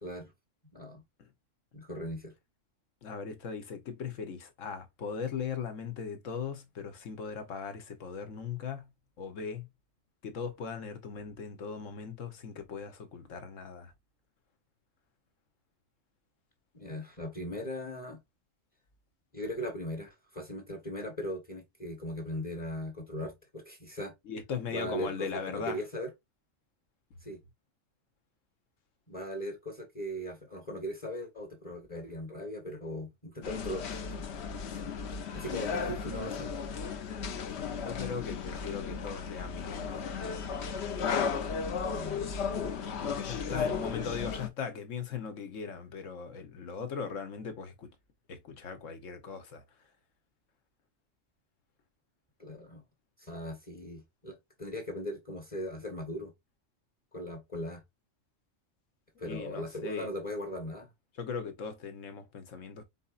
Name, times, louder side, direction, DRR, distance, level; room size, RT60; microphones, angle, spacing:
voice 1, 0.0-0.3 0.7-1.0 1.7-2.3 16.7-18.2 19.3-24.1 24.7-26.1 27.2-27.4 29.1-34.1 34.7-34.9 35.3-36.5 41.7-42.4 43.5-44.1 52.4-52.8 53.2-56.3 57.1-57.8 59.2-60.9, equal, 30° left, 1.1 m, -39 dB
voice 2, 3.0-9.7 10.2-13.9 24.2-25.8 37.7-40.1 42.8-47.9 48.3-49.6 59.2-60.1 61.1-62.8, left 6 dB, 85° left, 1.4 m, -39 dB
sound 1, 33.4-44.5, left 6 dB, 65° left, 1.0 m, -35 dB
4.6 x 4.2 x 2.4 m
omnidirectional pair, 1.3 m